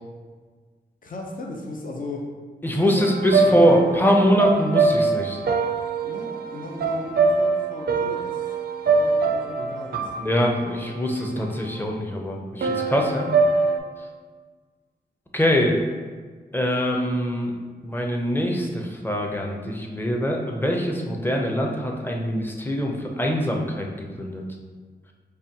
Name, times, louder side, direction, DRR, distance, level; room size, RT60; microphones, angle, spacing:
voice 1, 1.0-2.3 2.9-3.1 3.4-3.8 6.0-8.5 8.8-10.1, left 2 dB, 50° left, 0 dB, 0.7 m, -36 dB
voice 2, 2.6-5.4 10.2-13.3 15.3-15.8 16.5-17.5 17.8-24.4, equal, 10° left, 0 dB, 0.7 m, -23 dB
sound 1, 3.0-11.8 12.6-13.8, right 4 dB, 60° right, 0.4 m, -24 dB
4.9 x 2.3 x 2.9 m, 1.5 s
cardioid pair, 45°, 18 cm